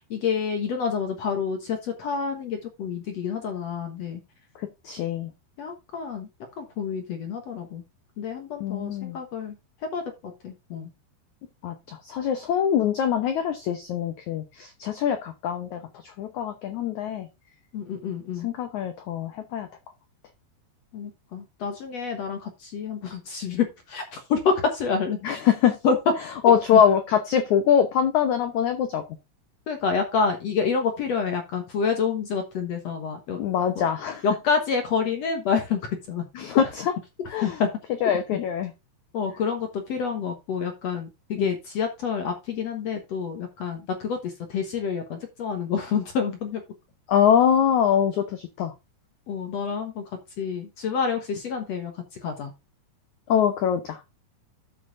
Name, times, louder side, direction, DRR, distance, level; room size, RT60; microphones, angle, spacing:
voice 1, 0.0-4.2 5.6-6.3 6.6-7.8 8.2-9.6 9.9-10.9 17.7-18.5 20.9-25.4 25.8-26.0 26.7-26.8 29.7-33.4 33.7-33.9 34.2-35.8 36.1-36.2 37.4-37.7 39.1-46.6 49.3-52.5, left 6 dB, 65° left, 6 dB, 1.6 m, -28 dB
voice 2, 4.5-5.3 8.6-9.2 11.6-17.3 18.4-19.7 25.2-25.8 26.4-29.0 33.4-34.2 36.3-36.9 37.3-37.6 38.0-38.7 41.4-41.5 47.1-48.7 53.3-54.0, left 8 dB, 85° left, 8 dB, 1.6 m, -23 dB
13.0 x 6.3 x 2.6 m, 0.25 s
omnidirectional pair, 4.9 m